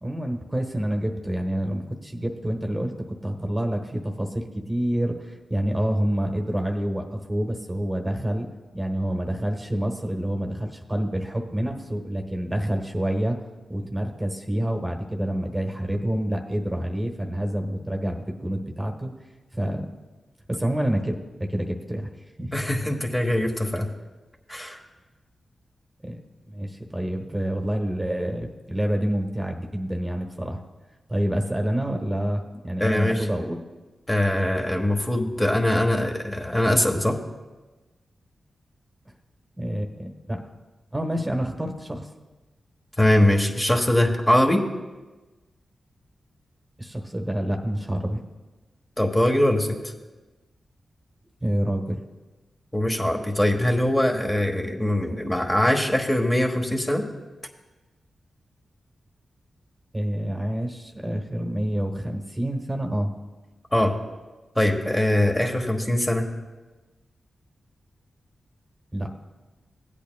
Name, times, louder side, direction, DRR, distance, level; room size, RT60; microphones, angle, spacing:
voice 1, 0.0-2.9 3.2-8.5 8.7-13.4 13.7-19.1 19.5-19.9 20.5-22.1 22.4-22.5 26.0-30.6 31.1-33.6 39.6-40.4 40.9-42.1 46.8-48.2 51.4-52.0 59.9-63.1 68.9-69.1, right 1 dB, 15° right, 3 dB, 1.2 m, -27 dB
voice 2, 22.5-23.9 24.5-24.8 32.8-33.3 34.1-37.2 43.0-44.6 49.0-49.9 52.7-57.0 63.7-63.9 64.5-66.3, left 1 dB, 15° left, 1 dB, 1.3 m, -22 dB
16.5 x 8.4 x 2.3 m, 1.2 s
cardioid pair, 45°, 0 cm